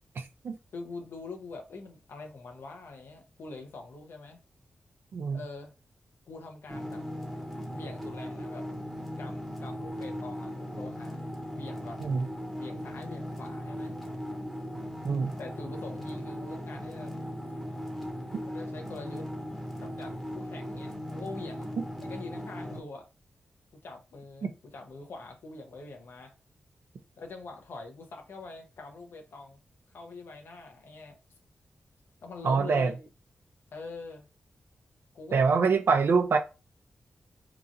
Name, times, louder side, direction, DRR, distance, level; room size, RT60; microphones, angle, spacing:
voice 1, 0.2-0.6 5.1-5.4 12.0-12.3 15.0-15.3 24.4-24.5 32.4-32.9 35.3-36.4, right 5 dB, 75° right, 0.5 m, -25 dB
voice 2, 0.7-4.4 5.3-5.7 6.3-7.0 7.7-8.6 9.2-11.2 11.5-12.1 12.6-14.0 15.4-17.1 18.4-19.3 19.8-23.1 23.8-26.3 27.2-29.6 29.9-31.2 32.2-33.1 33.7-34.3 35.1-35.5, left 3 dB, 80° left, 0.7 m, -44 dB
sound 1, 6.7-22.8, equal, ahead, 0.8 m, -38 dB
2.9 x 2.5 x 2.6 m
cardioid pair, 60°, 4 cm